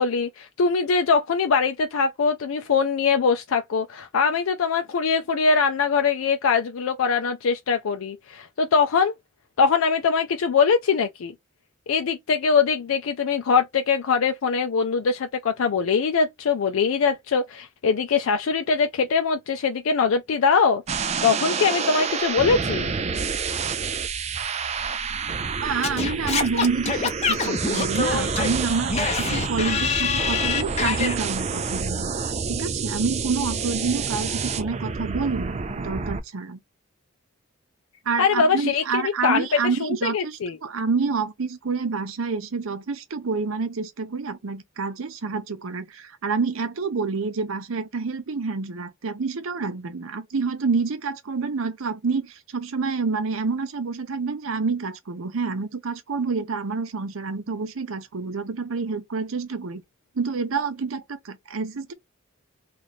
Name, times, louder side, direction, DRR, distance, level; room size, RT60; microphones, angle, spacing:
voice 1, 0.0-9.1 9.6-11.3 11.9-20.8 21.2-22.9 38.2-39.5 39.8-40.6, left 5 dB, 80° left, 0.4 m, -22 dB
sound 1, 20.9-36.2, right 5 dB, 30° right, 0.3 m, -28 dB
voice 2, 25.6-32.1 32.5-36.6 38.1-59.8 60.2-61.9, right 4 dB, 80° right, 0.7 m, -28 dB
Singing / Scratching (performance technique), 25.8-31.1, left 5 dB, 30° left, 0.6 m, -25 dB
3.1 x 2.5 x 4.1 m
head